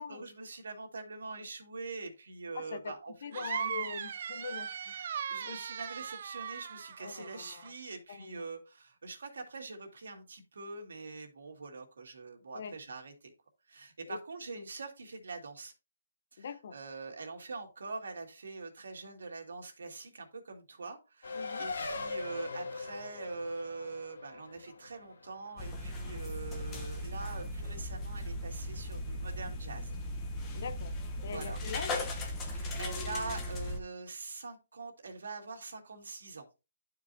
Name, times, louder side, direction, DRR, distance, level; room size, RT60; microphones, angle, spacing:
voice 1, 0.0-3.5 5.3-13.3 13.7-15.7 16.3-16.5 16.7-30.0 31.3-31.6 32.4-36.5, right 3 dB, 75° right, 2.2 m, -44 dB
voice 2, 2.5-2.9 3.2-4.9 5.4-5.7 7.0-7.7 8.1-8.5 12.5-12.7 14.1-14.2 14.5-14.6 16.4-16.8 21.3-21.7 30.5-30.9 31.2-32.0, left 6 dB, 45° left, 0.7 m, -42 dB
sound 1, 3.3-7.7, right 8 dB, 45° right, 0.4 m, -39 dB
Race car auto racing, 21.2-26.2, left 3 dB, 65° left, 1.4 m, -41 dB
sound 2, 25.6-33.8, left 1 dB, 15° left, 0.9 m, -37 dB
11.5 x 4.8 x 2.7 m
hypercardioid pair, 170°, 0 cm